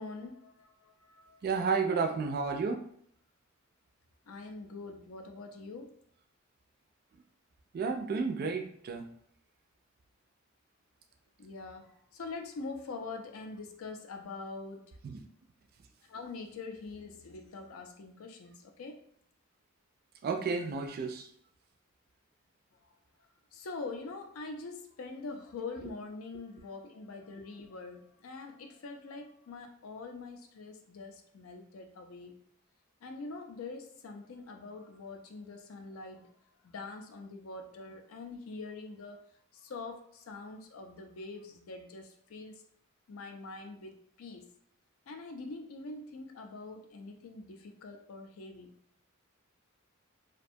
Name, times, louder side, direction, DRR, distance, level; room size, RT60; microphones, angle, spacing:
voice 1, 0.0-1.5 4.3-6.0 11.4-15.0 16.1-19.0 22.8-22.9 23.5-32.4 33.0-36.4 36.6-42.5 43.1-44.5 45.1-48.8, left 3 dB, 80° left, 5 dB, 0.4 m, -44 dB
voice 2, 1.4-2.9 7.7-9.1 15.0-15.2 20.2-21.3, right 5 dB, 45° right, 6 dB, 0.3 m, -32 dB
2.5 x 2.2 x 2.6 m, 0.64 s
head